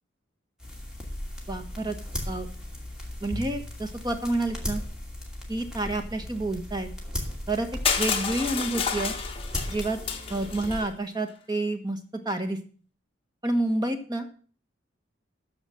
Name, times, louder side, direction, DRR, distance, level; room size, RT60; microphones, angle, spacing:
sound 1, 0.6-10.8, left 1 dB, 5° right, 2.5 m, -37 dB
voice 1, 1.5-2.0 2.3-2.5 3.2-4.8 5.5-6.9 7.5-7.7 8.0-9.1 9.7-10.0 10.3-12.0 12.2-12.6 13.4-14.3, right 2 dB, 20° right, 6 dB, 1.3 m, -29 dB
Crushing, 7.8-10.8, left 6 dB, 30° left, 1.5 m, -29 dB
13.5 x 5.0 x 7.5 m, 0.42 s
head